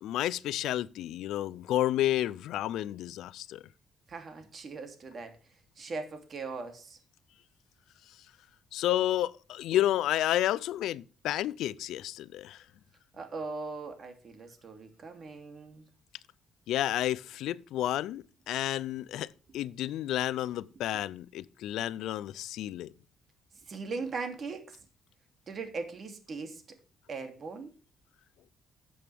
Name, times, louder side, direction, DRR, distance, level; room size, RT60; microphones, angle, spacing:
voice 1, 0.0-3.6 8.7-12.6 16.7-19.3 19.5-22.9, left 13 dB, 85° left, 0.5 m, -31 dB
voice 2, 4.1-5.4 5.8-7.0 13.1-15.8 19.9-20.0 23.7-24.7 25.5-26.6 27.1-27.7, right 4 dB, 45° right, 2.9 m, -39 dB
12.5 x 7.7 x 3.5 m
cardioid pair, 90°, 0 cm